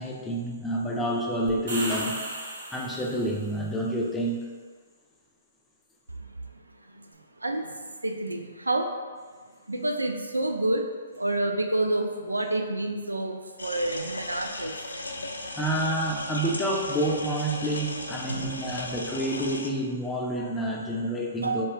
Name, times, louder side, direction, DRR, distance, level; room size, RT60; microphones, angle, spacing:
voice 1, 0.0-2.2 2.7-4.4 15.6-21.7, right 1 dB, 10° left, -1 dB, 0.5 m, -28 dB
sound 1, 1.5-3.4, right 1 dB, 65° right, 1.4 m, -35 dB
voice 2, 8.0-8.9 9.7-10.8 11.2-14.7 18.3-18.8 21.4-21.6, right 2 dB, 90° right, 4 dB, 0.4 m, -28 dB
sound 2, 13.6-19.7, left 2 dB, 80° left, 0.4 m, -36 dB
4.4 x 2.8 x 3.2 m, 1.5 s
figure-of-eight pair, 125°, 0 cm